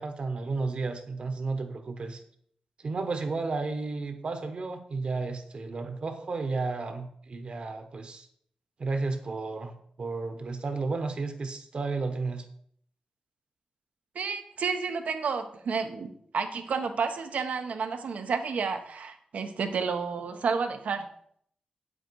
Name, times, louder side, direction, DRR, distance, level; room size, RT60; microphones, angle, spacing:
voice 1, 0.0-2.2 2.8-8.3 8.8-12.4, right 3 dB, 45° right, 7 dB, 1.2 m, -33 dB
voice 2, 14.1-21.1, right 5 dB, 80° right, 6 dB, 1.1 m, -31 dB
8.9 x 7.9 x 4.7 m, 0.65 s
wide cardioid pair, 170°, 2 cm